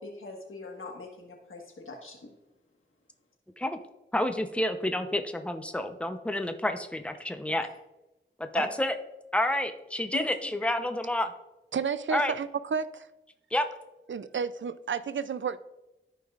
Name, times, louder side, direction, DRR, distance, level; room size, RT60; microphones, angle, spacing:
voice 1, 0.0-2.2 8.6-8.7 10.1-10.3, left 3 dB, 85° left, 1 dB, 1.6 m, -40 dB
voice 2, 4.1-7.7 8.4-8.9 9.3-11.3 12.1-12.3 13.5-13.6, left 1 dB, 5° left, 7 dB, 0.8 m, -29 dB
voice 3, 11.7-13.1 14.1-15.6, right 6 dB, 70° right, 14 dB, 0.4 m, -31 dB
13.5 x 5.4 x 2.5 m, 0.97 s
cardioid pair, 45°, 20 cm